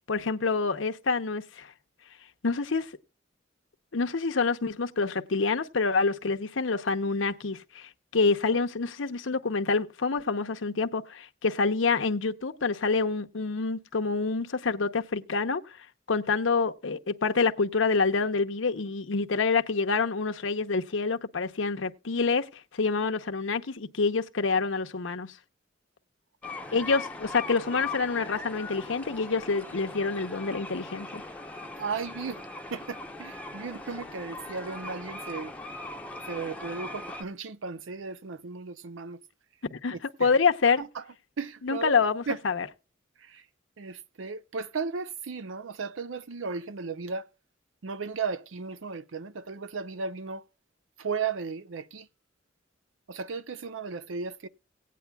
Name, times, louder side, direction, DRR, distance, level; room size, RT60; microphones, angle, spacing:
voice 1, 0.1-1.7 2.4-2.9 3.9-15.8 16.1-25.3 26.7-31.2 39.7-40.8 41.6-42.7, left 4 dB, 80° left, 0.8 m, -27 dB
sound 1, 26.4-37.2, left 2 dB, 5° left, 0.7 m, -40 dB
voice 2, 31.8-35.5 36.2-39.2 40.2-40.3 40.8-41.0 41.4-42.0 42.3-42.4 43.2-43.4 43.8-47.3 47.8-50.4 51.0-52.1 53.1-54.5, right 5 dB, 80° right, 0.6 m, -35 dB
17.5 x 9.3 x 2.3 m
head